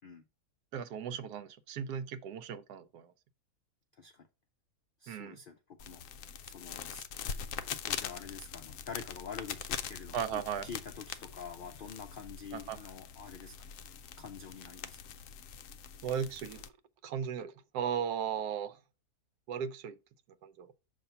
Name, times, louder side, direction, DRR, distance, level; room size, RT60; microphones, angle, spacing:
voice 1, 0.7-3.1 5.1-5.4 10.1-10.7 12.5-12.8 16.0-16.7 17.0-18.8 19.5-20.0 20.4-20.7, right 8 dB, 80° right, 1.1 m, -36 dB
voice 2, 3.9-4.3 5.0-6.0 6.4-13.5 14.2-15.0, left 6 dB, 85° left, 0.4 m, -47 dB
sound 1, 5.8-16.7, left 8 dB, 70° left, 0.8 m, -43 dB
6.6 x 2.8 x 5.6 m
omnidirectional pair, 1.7 m